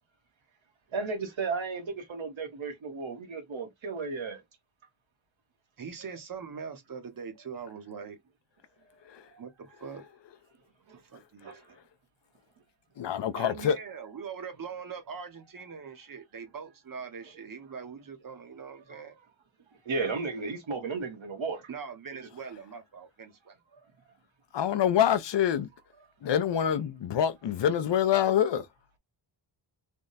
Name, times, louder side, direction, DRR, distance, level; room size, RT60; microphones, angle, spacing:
voice 1, 0.9-4.4 11.4-11.6 19.8-21.6, right 4 dB, 75° right, 1.3 m, -34 dB
voice 2, 5.8-8.2 9.4-10.0 10.9-11.8 13.3-19.2 21.7-23.5, right 6 dB, 45° right, 0.8 m, -42 dB
voice 3, 13.0-13.7 24.5-25.7 26.2-28.7, left 9 dB, 65° left, 0.5 m, -26 dB
3.5 x 2.1 x 3.9 m
wide cardioid pair, 170°, 47 cm